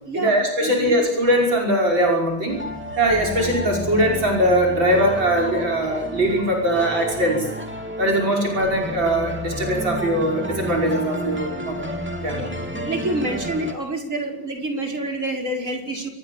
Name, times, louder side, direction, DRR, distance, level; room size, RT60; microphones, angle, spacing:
voice 1, 0.1-2.6 3.0-7.5 8.0-11.9 12.2-12.4, right 1 dB, 65° right, 0 dB, 6.4 m, -21 dB
sound 1, 2.5-13.7, equal, 5° right, 2.9 m, -31 dB
voice 2, 12.8-16.1, right 1 dB, 35° right, 1 dB, 5.7 m, -27 dB
28.0 x 22.0 x 7.4 m, 0.76 s
omnidirectional pair, 2.2 m